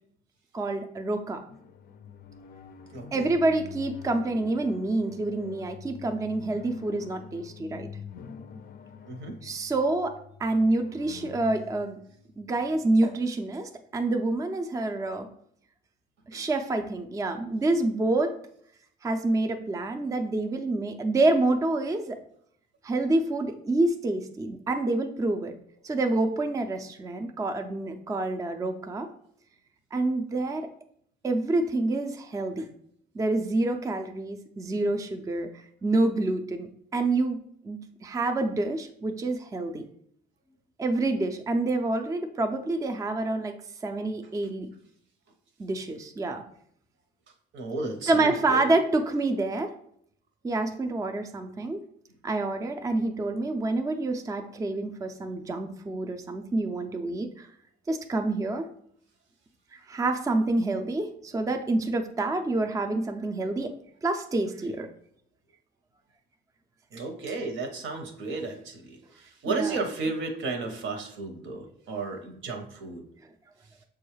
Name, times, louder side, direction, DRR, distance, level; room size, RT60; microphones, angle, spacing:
voice 1, 0.5-1.4 3.1-7.9 9.4-12.0 12.4-15.3 16.3-18.4 19.0-22.2 22.8-25.5 25.8-29.1 29.9-30.7 31.2-32.7 33.1-37.4 37.6-39.8 40.8-43.6 43.8-44.7 45.6-46.4 48.1-49.7 50.4-51.8 52.2-57.5 57.9-58.7 59.7-63.7 64.0-64.9 66.9-67.0 69.5-69.8, right 2 dB, 15° right, 5 dB, 0.4 m, -27 dB
sound 1, 1.5-13.1, left 6 dB, 45° left, 0.4 m, -46 dB
voice 2, 2.9-3.3 9.0-9.3 16.3-16.4 47.5-48.7 66.9-73.0, right 3 dB, 75° right, 5 dB, 0.9 m, -33 dB
6.1 x 2.3 x 3.1 m, 0.67 s
cardioid pair, 90°, 20 cm